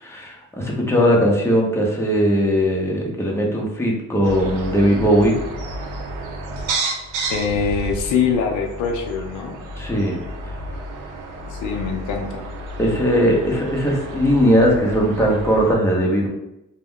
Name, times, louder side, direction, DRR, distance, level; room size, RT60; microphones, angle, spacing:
voice 1, 0.0-5.3 9.8-10.1 12.8-16.3, equal, 10° left, -2 dB, 0.7 m, -19 dB
sound 1, 4.2-15.8, right 2 dB, 85° right, 0.6 m, -31 dB
voice 2, 7.2-9.6 11.5-12.5, left 6 dB, 80° left, 3 dB, 0.5 m, -23 dB
2.3 x 2.2 x 3.6 m, 0.88 s
cardioid pair, 90°, 30 cm